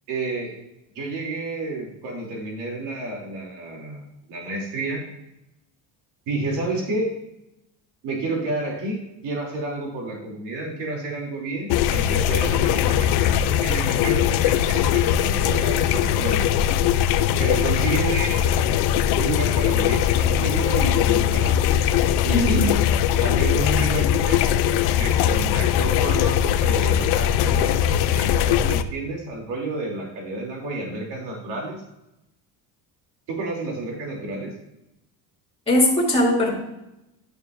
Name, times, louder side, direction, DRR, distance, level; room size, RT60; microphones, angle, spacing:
voice 1, 0.1-0.5 0.9-5.0 6.3-7.1 8.0-16.5 17.4-18.4 19.1-21.6 22.2-22.7 23.2-31.8 33.3-34.5, right 2 dB, 70° right, -1 dB, 3.2 m, -30 dB
sound 1, 11.7-28.8, left 10 dB, 60° left, 0.6 m, -20 dB
voice 2, 22.3-22.8 35.7-36.5, left 1 dB, 15° left, -1 dB, 2.8 m, -20 dB
11.0 x 7.0 x 2.6 m, 0.88 s
cardioid pair, 130°, 43 cm